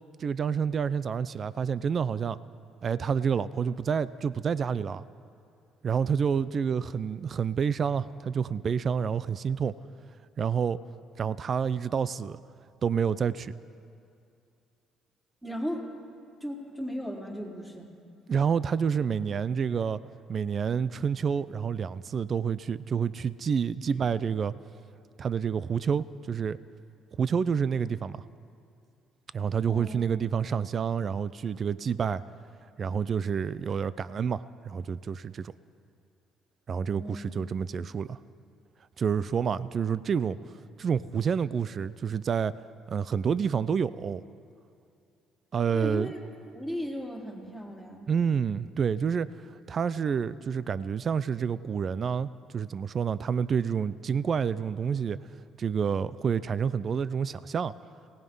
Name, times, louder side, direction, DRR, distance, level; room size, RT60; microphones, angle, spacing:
voice 1, 0.2-2.4 2.8-5.0 5.8-9.8 10.4-10.8 11.2-12.4 12.8-13.5 18.3-20.0 20.3-24.5 25.2-26.6 27.2-28.2 29.3-32.2 32.8-35.5 36.7-38.2 39.0-40.4 40.8-42.5 42.9-44.2 45.5-46.1 48.1-49.3 49.7-55.2 55.6-57.7, right 7 dB, 45° right, 17 dB, 0.5 m, -28 dB
voice 2, 15.4-15.9 16.4-17.9 23.9-24.0 29.7-30.0 36.9-37.4 45.7-46.2 46.5-48.1, equal, 10° right, -4 dB, 4.4 m, -36 dB
27.0 x 18.5 x 5.5 m, 2.5 s
supercardioid pair, 80°, 0 cm